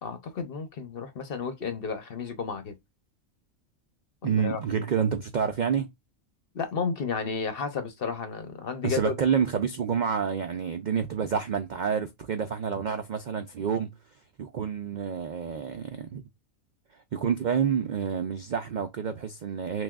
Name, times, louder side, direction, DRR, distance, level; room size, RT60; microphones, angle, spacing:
voice 1, 0.0-2.8 4.2-4.6 6.5-9.1, left 5 dB, 50° left, 0.8 m, -32 dB
voice 2, 4.2-5.9 8.8-13.9 14.4-16.2 17.1-19.8, right 7 dB, 80° right, 0.4 m, -28 dB
6.0 x 2.3 x 2.3 m
omnidirectional pair, 1.4 m